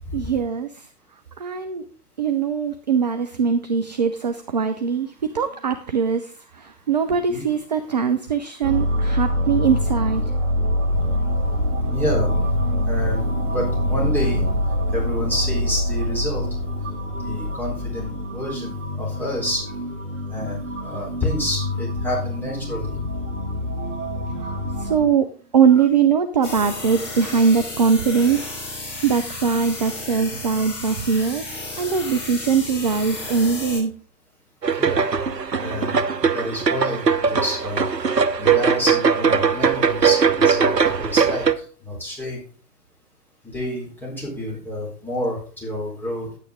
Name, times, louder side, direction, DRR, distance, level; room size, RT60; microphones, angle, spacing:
voice 1, 0.1-0.9 1.4-1.8 2.2-10.2 24.4-25.3 25.5-28.5 29.0-31.5 31.8-33.9, right 6 dB, 30° right, 8 dB, 0.4 m, -21 dB
sound 1, 8.6-25.1, left 1 dB, 50° right, 2.2 m, -25 dB
voice 2, 11.9-12.3 12.9-14.5 14.9-16.5 17.2-19.7 20.3-22.9 34.8-35.1 35.6-36.1 36.3-37.9 38.4-42.4 43.4-46.3, left 1 dB, 5° left, -4 dB, 3.9 m, -28 dB
sound 2, 26.4-33.8, left 2 dB, 35° left, 4.2 m, -33 dB
sound 3, 34.6-41.5, right 6 dB, 85° right, 0.9 m, -20 dB
10.0 x 8.6 x 3.7 m, 0.40 s
figure-of-eight pair, 120°, 48 cm